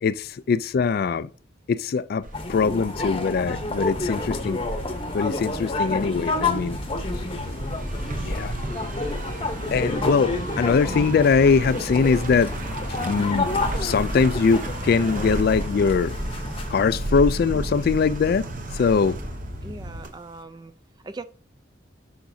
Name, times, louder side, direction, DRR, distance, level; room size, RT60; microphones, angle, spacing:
voice 1, 0.0-1.3 1.7-4.6 5.1-6.8 8.2-8.5 9.7-12.5 13.0-13.5 13.8-16.1 16.7-18.5 18.7-19.2, left 5 dB, 50° left, 0.3 m, -22 dB
sound 1, 2.2-20.4, right 1 dB, 45° right, 0.8 m, -34 dB
sound 2, 2.3-16.7, left 2 dB, 30° left, 0.8 m, -30 dB
sound 3, 3.4-20.0, equal, 60° right, 2.3 m, -38 dB
voice 2, 5.3-5.7 19.6-20.7 21.0-21.2, right 3 dB, 20° right, 0.4 m, -40 dB
10.0 x 5.9 x 2.7 m
head